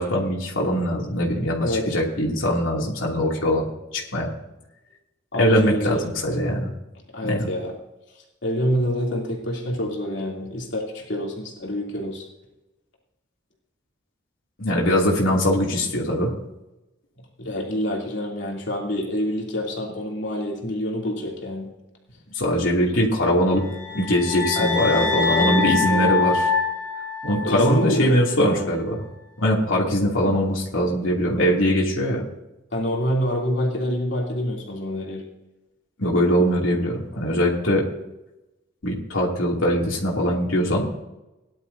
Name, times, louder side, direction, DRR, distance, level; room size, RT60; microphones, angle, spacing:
voice 1, 0.0-4.3 5.4-6.7 7.3-7.5 14.6-16.3 22.3-23.7 23.9-26.4 27.2-29.0 29.4-32.2 36.0-37.8 38.8-40.9, equal, 85° left, -3 dB, 2.7 m, -22 dB
voice 2, 5.3-6.0 7.1-7.7 8.4-12.2 17.4-21.7 24.5-26.3 27.4-28.8 32.7-35.2, equal, 60° left, -2 dB, 3.1 m, -27 dB
sound 1, 23.6-27.9, left 5 dB, 45° left, 3.2 m, -24 dB
18.5 x 11.0 x 2.8 m, 0.97 s
head